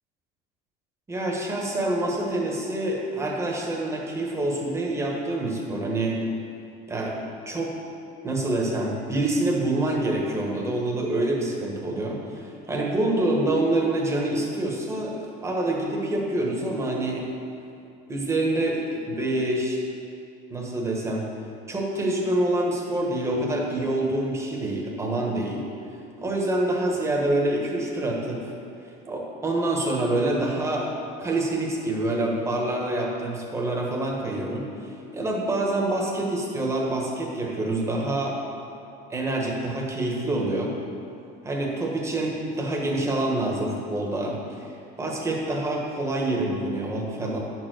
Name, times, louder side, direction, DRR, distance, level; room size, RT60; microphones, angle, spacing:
voice 1, 1.1-6.2 6.9-7.2 7.5-7.7 8.2-17.2 18.1-19.8 20.5-21.2 21.7-25.6 26.2-28.6 29.1-30.9 31.2-38.4 39.1-40.7 41.4-44.7 45.0-47.4, right 1 dB, 15° right, -2 dB, 1.3 m, -26 dB
9.8 x 4.6 x 6.4 m, 2.6 s
cardioid pair, 145°, 18 cm